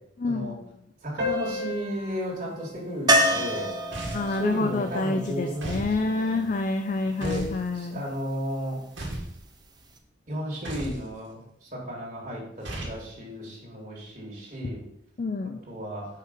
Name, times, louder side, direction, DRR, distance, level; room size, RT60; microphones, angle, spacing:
voice 1, 0.2-0.6 4.1-8.0 15.2-15.6, left 3 dB, 40° left, 6 dB, 0.5 m, -28 dB
voice 2, 1.0-3.7 4.3-6.4 7.2-8.8 10.3-14.8 15.7-16.1, equal, 45° right, -5 dB, 2.3 m, -34 dB
sound 1, 1.2-6.2, left 3 dB, 70° right, 2.0 m, -38 dB
sound 2, 3.1-7.0 9.6-9.7 10.0-10.1, right 1 dB, 20° right, 0.9 m, -27 dB
sound 3, 3.9-4.4 5.6-5.9 7.2-7.6 9.0-9.4 10.6-11.0 12.6-13.0, right 1 dB, 90° right, 2.2 m, -34 dB
5.7 x 5.0 x 6.6 m, 0.73 s
head